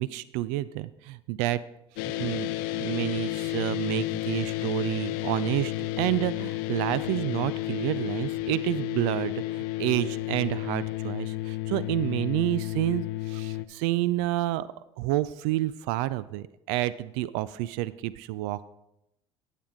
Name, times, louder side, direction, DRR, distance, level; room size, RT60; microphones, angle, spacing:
voice 1, 0.0-1.6 2.2-2.5 2.8-14.7 15.0-18.7, right 16 dB, 75° right, 18 dB, 0.4 m, -29 dB
sound 1, 2.0-13.6, left 17 dB, 70° left, 0.5 m, -32 dB
12.0 x 7.5 x 3.6 m, 0.86 s
hypercardioid pair, 75°, 15 cm